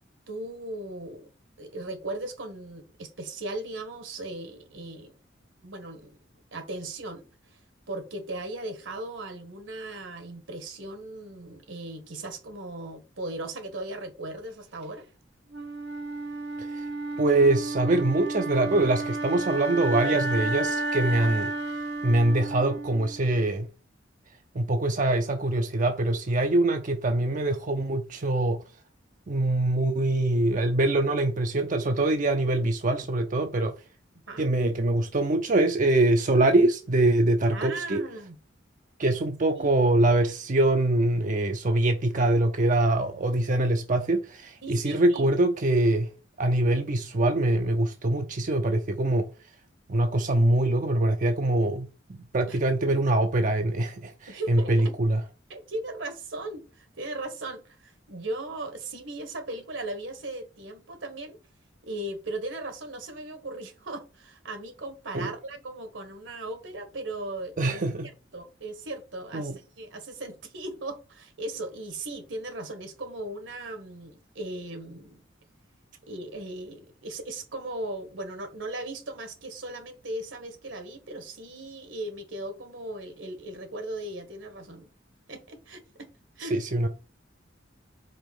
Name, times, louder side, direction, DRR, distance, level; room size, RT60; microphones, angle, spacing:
voice 1, 0.3-1.3 1.6-5.2 5.6-6.2 6.5-7.6 7.9-15.1 20.0-20.2 34.3-34.5 37.5-38.4 39.6-39.7 44.6-45.3 52.5-52.6 54.3-55.0 55.5-61.4 61.8-75.2 76.1-84.9 85.3-86.1 86.4-86.6, right 2 dB, 80° right, 1.6 m, -37 dB
Wind instrument woodwind instrument, 15.5-23.5, right 2 dB, 60° right, 1.0 m, -32 dB
voice 2, 17.2-21.8 22.0-23.7 24.5-28.6 29.3-33.7 34.4-38.0 39.0-46.1 46.4-49.3 49.9-55.2 65.1-65.3 67.6-68.1 69.3-69.5 86.4-86.9, right 2 dB, 45° right, 0.6 m, -24 dB
5.1 x 4.2 x 5.9 m
head